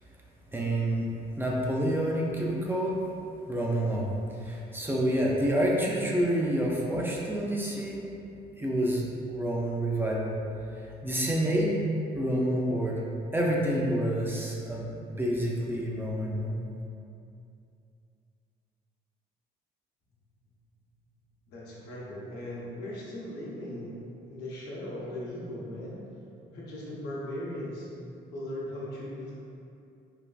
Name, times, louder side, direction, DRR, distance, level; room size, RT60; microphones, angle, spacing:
voice 1, 0.5-3.1 3.5-8.0 8.6-10.3 10.7-11.8 12.1-13.0 13.3-16.6, right 1 dB, 15° right, -3 dB, 0.3 m, -28 dB
voice 2, 21.5-24.0 24.2-26.1 26.5-27.9 28.3-29.3, left 1 dB, 80° left, -6 dB, 0.8 m, -38 dB
3.2 x 2.3 x 2.3 m, 2.6 s
cardioid pair, 110°, 17 cm